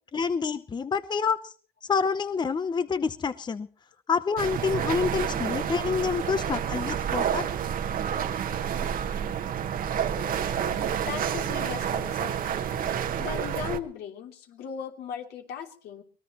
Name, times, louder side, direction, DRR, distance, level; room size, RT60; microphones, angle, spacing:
voice 1, 0.1-1.5 1.8-3.7 4.1-7.5, left 5 dB, 25° left, 12 dB, 0.8 m, -27 dB
sound 1, 4.4-13.8, right 8 dB, 55° right, 1.4 m, -29 dB
voice 2, 11.1-12.4 13.2-16.0, left 7 dB, 75° left, 3 dB, 3.2 m, -37 dB
24.0 x 19.0 x 3.1 m, 0.41 s
cardioid pair, 110°, 17 cm